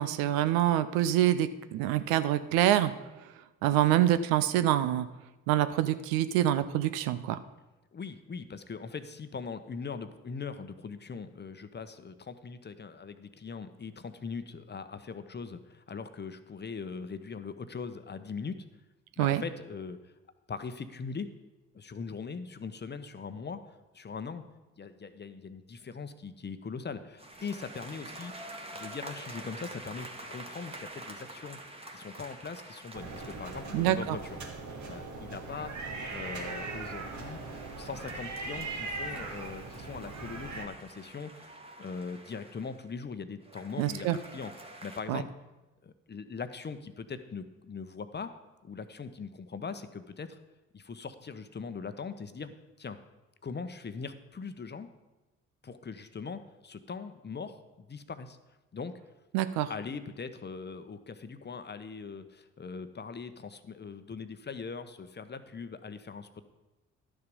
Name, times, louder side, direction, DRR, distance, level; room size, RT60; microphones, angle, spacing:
voice 1, 0.0-2.9 3.6-5.1 5.5-7.4 19.2-19.4 33.7-34.2 43.8-44.2 45.1-45.2 59.3-59.7, right 12 dB, 70° right, 13 dB, 0.6 m, -26 dB
voice 2, 7.9-18.6 19.2-20.1 20.5-21.3 21.7-23.6 23.9-24.4 24.8-28.3 28.7-31.6 31.9-34.4 34.8-35.8 36.1-37.4 37.7-41.5 41.8-44.5 44.8-45.3 45.8-48.3 48.6-50.4 50.7-53.0 53.4-54.9 55.6-58.4 58.7-59.0 59.7-66.4, left 5 dB, 30° left, 10 dB, 0.9 m, -41 dB
sound 1, 27.2-34.7 35.4-42.9 43.4-45.0, right 1 dB, 15° right, 1.6 m, -47 dB
sound 2, 32.9-40.7, right 3 dB, 50° right, 1.8 m, -40 dB
11.5 x 6.8 x 5.3 m, 1.1 s
hypercardioid pair, 45°, 37 cm